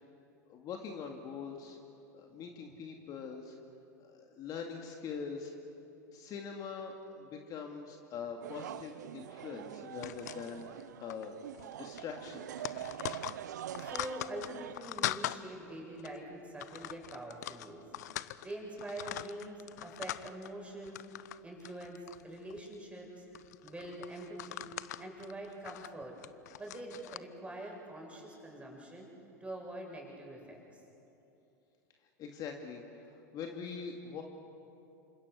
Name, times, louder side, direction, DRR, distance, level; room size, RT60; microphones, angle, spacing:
voice 1, 0.5-1.8 2.1-3.5 4.0-5.5 6.1-10.7 11.0-11.3 11.8-12.5 32.2-34.2, left 6 dB, 40° left, 2 dB, 2.4 m, -43 dB
sound 1, 8.4-14.7, right 11 dB, 75° right, 0.5 m, -44 dB
sound 2, 10.0-10.8 11.1-11.3 11.5-11.7 12.0-15.4 16.0-16.2 16.6-18.5 18.8-20.5 20.8-21.4 21.6-22.8 23.3-27.2, left 14 dB, 70° left, 0.7 m, -41 dB
voice 2, 13.7-17.9 18.2-21.1 21.4-23.3 23.6-24.7 25.0-26.2 26.6-29.1 29.4-30.8, right 1 dB, 10° right, -1 dB, 7.6 m, -45 dB
28.0 x 26.0 x 6.4 m, 2.8 s
hypercardioid pair, 90°, 9 cm